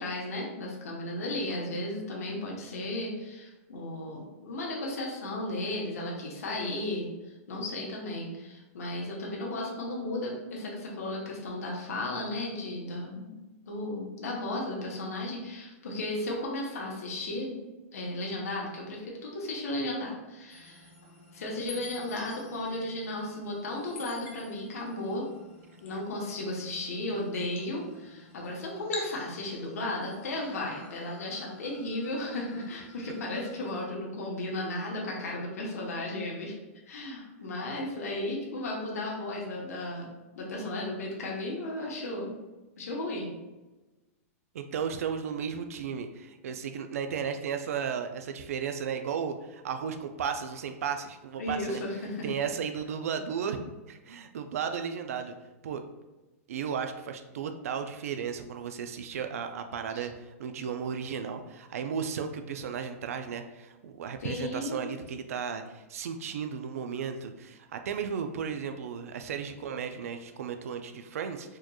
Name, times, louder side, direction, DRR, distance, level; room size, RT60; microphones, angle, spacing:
voice 1, 0.0-13.4 13.7-17.6 17.9-20.9 21.3-25.3 25.8-36.5 36.9-40.1 40.3-42.3 42.8-43.3 51.4-52.3 59.9-60.0 64.2-64.8, left 1 dB, 90° left, -2 dB, 1.0 m, -35 dB
sound 1, 20.5-33.8, left 3 dB, 55° left, 1.0 m, -49 dB
voice 2, 44.5-51.8 52.2-53.6 53.9-55.4 55.6-55.8 56.5-71.6, right 7 dB, 75° right, 7 dB, 0.4 m, -34 dB
4.4 x 2.9 x 2.3 m, 1.1 s
supercardioid pair, 170°, 8 cm